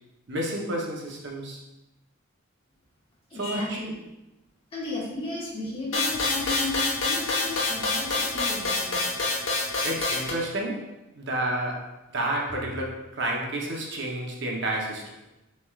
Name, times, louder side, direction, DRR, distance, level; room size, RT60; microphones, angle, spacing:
voice 1, 0.3-1.6 3.4-3.8 9.8-15.1, right 1 dB, 55° right, -1 dB, 0.8 m, -30 dB
voice 2, 3.3-4.0 4.7-9.0, left 2 dB, 25° left, -5 dB, 1.3 m, -34 dB
sound 1, 5.9-10.3, left 3 dB, 65° left, 1.1 m, -26 dB
7.0 x 3.2 x 2.4 m, 0.97 s
head